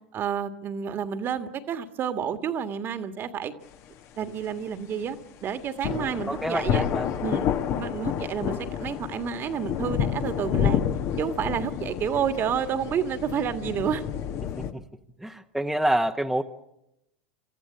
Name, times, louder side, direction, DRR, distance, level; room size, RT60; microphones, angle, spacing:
voice 1, 0.1-3.5 4.2-6.8 7.2-10.8 11.2-14.0, right 8 dB, 35° right, 9 dB, 1.7 m, -30 dB
sound 1, 5.8-14.7, left 9 dB, 45° left, 1.4 m, -29 dB
voice 2, 5.9-7.1 14.6-14.8 15.2-16.4, right 1 dB, ahead, 3 dB, 1.1 m, -28 dB
26.0 x 14.5 x 8.8 m, 0.86 s
hypercardioid pair, 90°, 6 cm